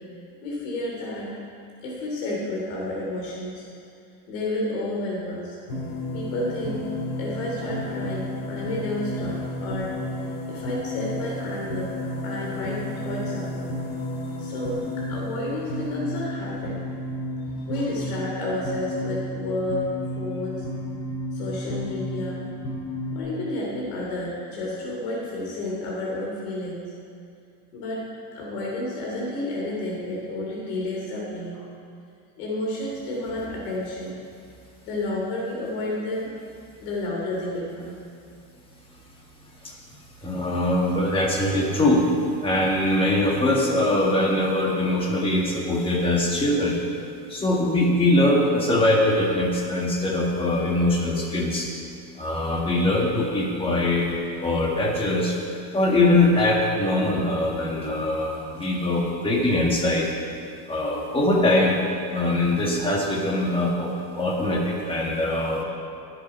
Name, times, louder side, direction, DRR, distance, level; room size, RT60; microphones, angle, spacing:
voice 1, 0.4-1.3 1.8-3.6 4.3-5.6 6.1-6.9 7.2-9.9 10.5-12.0 12.2-13.7 14.4-16.8 17.5-19.8 20.2-20.7 21.3-22.5 23.1-26.8 27.7-28.0 28.3-31.7 32.4-34.2 34.8-36.3 36.8-37.9, left 2 dB, 85° left, -4 dB, 3.1 m, -31 dB
sound 1, 5.7-23.2, left 1 dB, 55° left, 2.8 m, -32 dB
voice 2, 40.2-42.1 42.4-46.8 47.3-51.7 52.2-54.1 54.4-55.4 55.7-60.1 60.7-61.8 62.1-65.6, left 1 dB, 10° left, -2 dB, 1.8 m, -22 dB
21.0 x 8.1 x 4.4 m, 2.4 s
cardioid pair, 165°, 43 cm